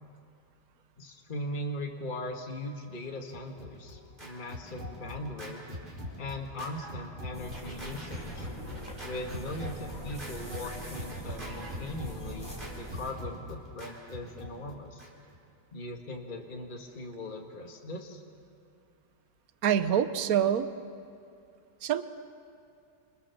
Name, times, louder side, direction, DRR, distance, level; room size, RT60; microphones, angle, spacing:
voice 1, 1.0-5.7 6.2-8.5 9.0-15.1 15.7-18.2, left 1 dB, 30° left, 1 dB, 2.0 m, -39 dB
Scratching (performance technique), 3.3-15.4, left 1 dB, 25° right, 4.9 m, -42 dB
sound 1, 7.3-13.1, equal, 10° left, 4.8 m, -43 dB
voice 2, 19.6-20.7 21.8-22.0, right 9 dB, 60° right, 11 dB, 1.4 m, -25 dB
29.5 x 27.0 x 7.2 m, 2.6 s
omnidirectional pair, 1.9 m